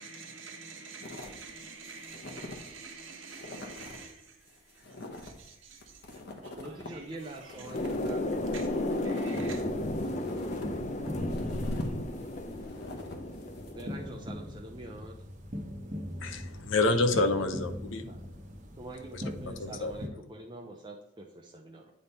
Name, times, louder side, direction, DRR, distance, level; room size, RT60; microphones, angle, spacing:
voice 1, 0.0-9.7, right 4 dB, 80° right, 1.5 m, -48 dB
sound 1, 1.0-1.5 1.8-2.7 3.0-3.1 3.3-4.0 4.5-9.4 9.8-13.7, left 2 dB, 55° left, 1.1 m, -46 dB
voice 2, 6.5-8.6 13.8-15.1 18.1-18.2 18.8-21.9, right 2 dB, 25° right, 0.6 m, -45 dB
sound 2, 7.7-14.1, left 1 dB, 40° left, 0.6 m, -33 dB
sound 3, 9.3-20.1, left 1 dB, 40° right, 1.0 m, -42 dB
voice 3, 16.2-18.1 19.1-19.2 19.6-19.9, left 2 dB, 80° left, 0.8 m, -28 dB
9.3 x 3.5 x 4.2 m
head